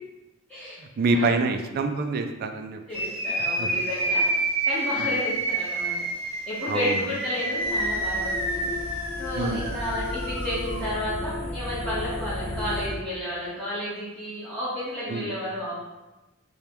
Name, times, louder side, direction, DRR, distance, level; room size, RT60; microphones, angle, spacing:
voice 1, 0.8-2.8 3.6-3.7 5.0-5.2 6.7-7.0 9.4-9.8 15.1-15.3, right 3 dB, 45° right, 6 dB, 0.3 m, -26 dB
voice 2, 2.9-5.9 6.5-8.7 9.2-15.7, equal, 5° left, -13 dB, 1.1 m, -32 dB
sound 1, 2.9-10.9, right 1 dB, 25° right, 0.8 m, -28 dB
sound 2, 7.6-12.9, left 2 dB, 55° left, 0.9 m, -34 dB
3.4 x 2.2 x 4.3 m, 1.0 s
head